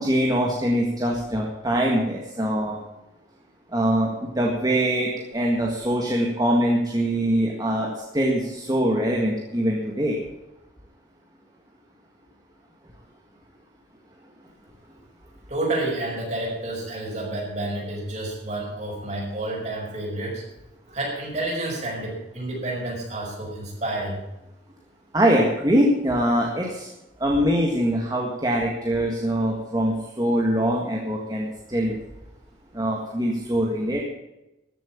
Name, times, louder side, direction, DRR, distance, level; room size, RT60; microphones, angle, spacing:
voice 1, 0.0-2.8 3.7-10.2 25.1-26.9 27.2-32.0 32.7-34.0, equal, 20° right, -1 dB, 1.7 m, -23 dB
voice 2, 15.5-20.4 20.9-24.2, right 2 dB, 40° right, -3 dB, 6.0 m, -29 dB
14.0 x 7.7 x 8.7 m, 0.93 s
head